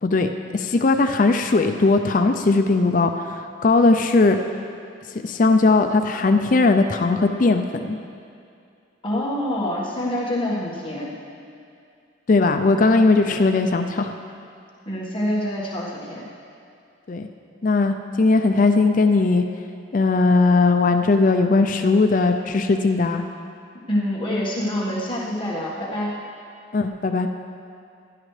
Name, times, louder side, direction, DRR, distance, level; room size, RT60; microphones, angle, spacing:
voice 1, 0.0-4.4 5.1-8.0 12.3-14.1 17.1-17.3 17.6-19.4 19.9-23.2 26.7-27.3, left 3 dB, 40° left, 6 dB, 0.4 m, -19 dB
voice 2, 9.0-11.1 13.3-13.4 14.8-16.3 23.9-26.1, left 1 dB, 25° left, -6 dB, 1.5 m, -26 dB
15.5 x 11.0 x 3.3 m, 2.4 s
head